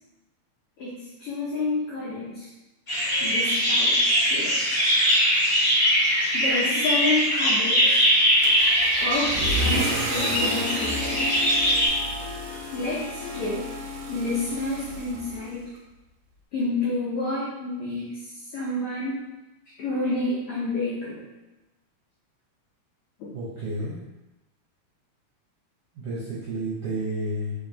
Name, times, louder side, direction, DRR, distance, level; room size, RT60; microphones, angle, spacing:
voice 1, 0.8-2.5 3.2-4.6 6.3-8.0 9.0-11.3 12.7-13.7 14.1-15.7 16.5-18.1 18.5-19.2 19.8-21.2 23.2-23.3, left 2 dB, 80° left, -6 dB, 1.2 m, -29 dB
sound 1, 2.9-11.9, equal, 30° left, 1.0 m, -22 dB
Car / Engine starting / Accelerating revving vroom, 8.4-15.8, right 1 dB, 90° right, 2.0 m, -33 dB
Harp, 9.1-15.6, left 3 dB, 55° left, 1.6 m, -37 dB
voice 2, 23.3-24.0 25.9-27.5, right 1 dB, 70° right, -9 dB, 1.4 m, -31 dB
4.3 x 3.0 x 2.5 m, 1.0 s
omnidirectional pair, 3.4 m